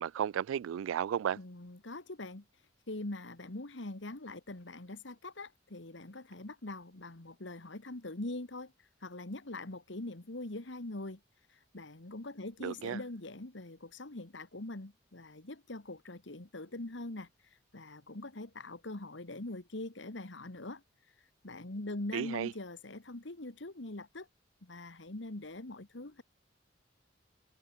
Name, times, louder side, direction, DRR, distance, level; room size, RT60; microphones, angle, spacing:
voice 1, 0.0-1.4 12.6-13.0 22.1-22.5, right 9 dB, 85° right, 0.3 m, -33 dB
voice 2, 1.4-2.4 2.9-8.7 9.0-11.2 11.5-17.3 17.7-20.8 21.4-24.3 24.6-26.2, left 2 dB, 65° left, 1.7 m, -43 dB
head